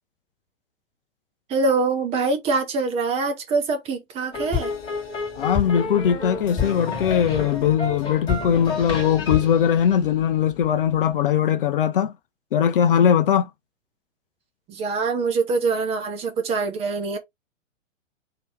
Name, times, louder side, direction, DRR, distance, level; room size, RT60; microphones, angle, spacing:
voice 1, 1.5-4.7 14.7-17.2, right 4 dB, 15° right, 0.6 m, -24 dB
sound 1, 4.3-10.7, left 5 dB, 15° left, 1.7 m, -29 dB
voice 2, 5.4-12.1 12.5-13.5, left 9 dB, 45° left, 0.5 m, -20 dB
3.0 x 2.8 x 4.3 m
figure-of-eight pair, 115°, 38 cm